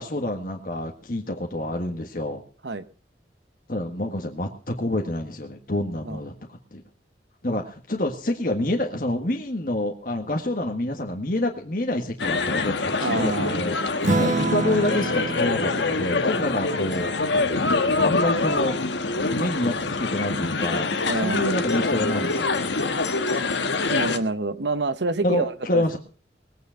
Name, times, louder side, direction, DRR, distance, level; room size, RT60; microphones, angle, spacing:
voice 1, 0.0-2.4 3.7-6.8 7.4-17.1 18.0-18.8 19.2-22.8 25.2-26.0, left 1 dB, 50° left, 1.6 m, -27 dB
sound 1, 12.2-24.2, left 3 dB, 85° left, 1.4 m, -25 dB
voice 2, 13.0-13.7 21.0-21.7 23.9-26.0, right 3 dB, 75° right, 1.1 m, -27 dB
Acoustic guitar / Strum, 14.0-18.9, right 2 dB, 40° right, 1.2 m, -29 dB
20.5 x 9.2 x 5.8 m
head